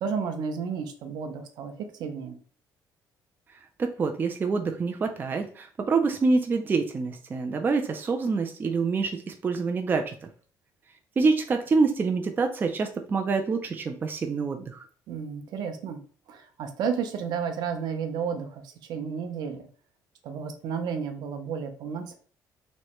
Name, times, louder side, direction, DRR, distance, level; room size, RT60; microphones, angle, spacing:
voice 1, 0.0-2.4 15.1-16.0 16.3-18.6 18.9-19.7 20.2-22.1, right 6 dB, 75° right, 7 dB, 0.7 m, -32 dB
voice 2, 3.8-10.3 11.2-14.8, right 4 dB, 25° right, 4 dB, 0.4 m, -26 dB
3.2 x 3.1 x 3.0 m, 0.43 s
cardioid pair, 130°, 7 cm